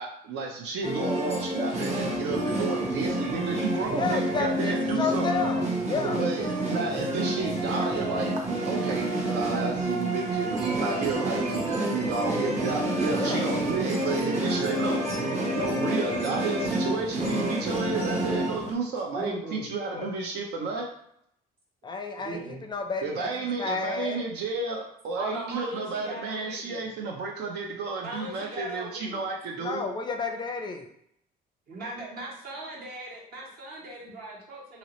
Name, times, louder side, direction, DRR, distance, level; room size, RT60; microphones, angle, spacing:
voice 1, 0.0-5.3 6.0-8.3 8.7-15.1 15.5-20.9 23.0-29.9, right 4 dB, 80° right, 1 dB, 0.6 m, -32 dB
sound 1, 0.8-18.7, right 1 dB, 40° right, 0.8 m, -28 dB
voice 2, 3.9-6.2 13.2-13.4 19.9-20.1 21.8-22.4 22.7-23.3 23.6-24.2 29.6-30.9, left 4 dB, 25° left, 5 dB, 0.4 m, -31 dB
voice 3, 19.1-19.7 22.2-22.6 25.1-26.9 28.0-29.3 31.7-34.8, right 2 dB, 65° right, -4 dB, 1.4 m, -38 dB
2.8 x 2.8 x 3.0 m, 0.71 s
cardioid pair, 110°, 17 cm